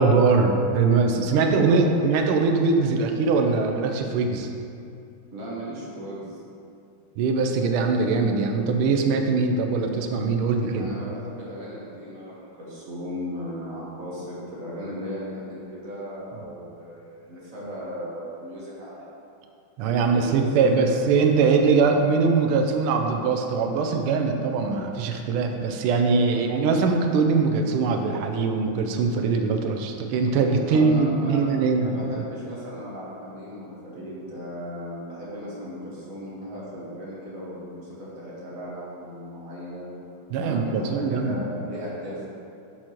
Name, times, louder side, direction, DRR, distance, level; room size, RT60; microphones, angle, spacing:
voice 1, 0.0-4.5 7.2-10.9 19.8-32.0 40.3-41.4, right 4 dB, 85° right, 4 dB, 1.5 m, -22 dB
voice 2, 1.3-1.9 5.3-6.4 10.8-19.0 20.0-21.5 26.3-26.6 30.6-42.2, equal, 45° right, -7 dB, 1.6 m, -36 dB
6.7 x 5.9 x 2.9 m, 2.6 s
omnidirectional pair, 2.3 m